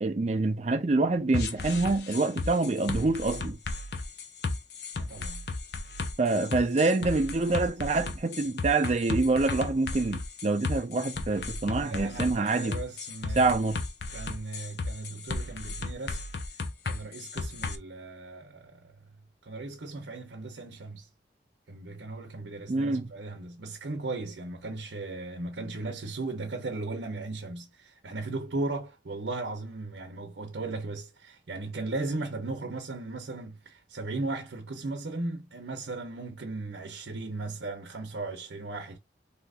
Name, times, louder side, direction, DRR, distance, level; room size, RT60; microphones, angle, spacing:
voice 1, 0.0-3.6 6.2-12.8 13.4-13.8 22.7-23.1, right 3 dB, 40° right, 0.4 m, -26 dB
sound 1, 1.3-17.8, left 3 dB, 65° left, 0.6 m, -34 dB
voice 2, 4.9-5.4 11.8-13.5 14.1-16.2 16.8-19.0 19.4-21.1 21.7-39.0, right 2 dB, 80° right, 0.7 m, -37 dB
2.8 x 2.5 x 3.5 m
head